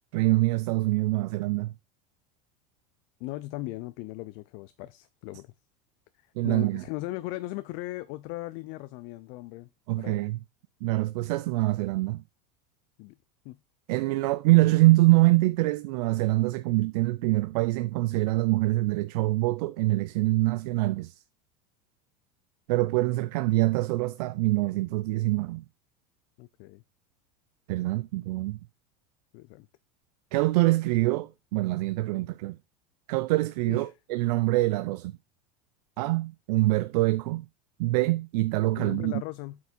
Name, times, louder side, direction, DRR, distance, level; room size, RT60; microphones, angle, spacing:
voice 1, 0.1-1.7 6.4-6.8 9.9-10.4 10.8-12.2 13.9-21.2 22.7-25.6 27.7-28.6 30.3-32.6 33.1-35.2 36.0-37.4 37.8-39.1, right 19 dB, 70° right, 0.6 m, -25 dB
voice 2, 3.2-5.5 6.4-9.7 10.0-10.3 13.0-13.2 13.4-13.6 26.4-26.8 29.3-29.7 33.7-33.9 38.7-39.6, left 18 dB, 60° left, 0.6 m, -38 dB
8.5 x 4.6 x 4.4 m
supercardioid pair, 115°, 21 cm